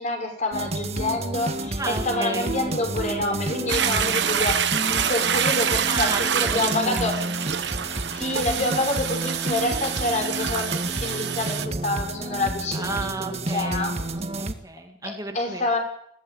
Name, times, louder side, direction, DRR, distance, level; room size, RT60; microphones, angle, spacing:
voice 1, 0.0-4.6 4.9-7.2 8.1-13.9 15.0-15.8, left 2 dB, 45° left, 4 dB, 5.9 m, -27 dB
sound 1, 0.5-14.5, right 2 dB, 35° right, 1.7 m, -30 dB
voice 2, 1.8-2.5 5.9-7.0 7.3-7.4 12.7-15.6, right 3 dB, 20° right, 3 dB, 2.6 m, -33 dB
Toilet flush, 3.7-11.7, right 8 dB, 75° right, 1.2 m, -26 dB
21.5 x 16.5 x 9.2 m, 0.72 s
head